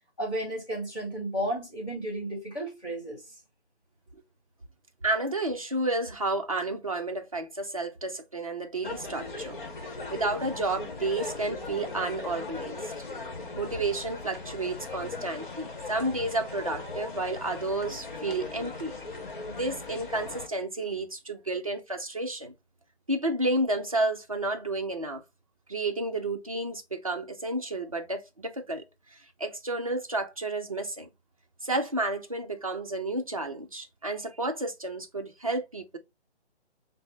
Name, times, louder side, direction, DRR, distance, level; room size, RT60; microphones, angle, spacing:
voice 1, 0.2-3.2, right 1 dB, 20° left, 1.3 m, -33 dB
voice 2, 5.0-9.6 9.8-12.9 13.5-18.9 19.5-22.5 23.1-25.2 25.7-31.1 31.6-36.0, right 2 dB, 35° right, 0.5 m, -31 dB
sound 1, 8.8-20.5, left 3 dB, 50° left, 0.9 m, -39 dB
5.8 x 2.0 x 3.0 m
hypercardioid pair, 170°, 33 cm